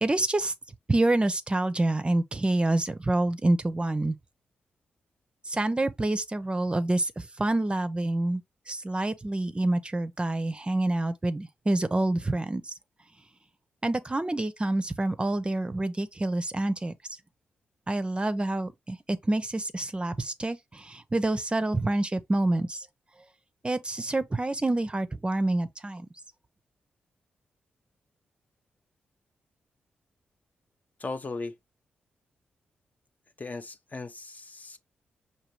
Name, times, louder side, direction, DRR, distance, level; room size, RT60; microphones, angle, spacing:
voice 1, 0.0-0.5 0.9-4.2 5.5-8.4 8.7-12.7 13.8-16.9 17.9-22.9 23.6-26.1, right 2 dB, 25° right, 0.5 m, -27 dB
voice 2, 31.0-31.5 33.4-34.8, left 3 dB, 35° left, 0.6 m, -37 dB
5.0 x 2.7 x 3.0 m
supercardioid pair, 50°, 4 cm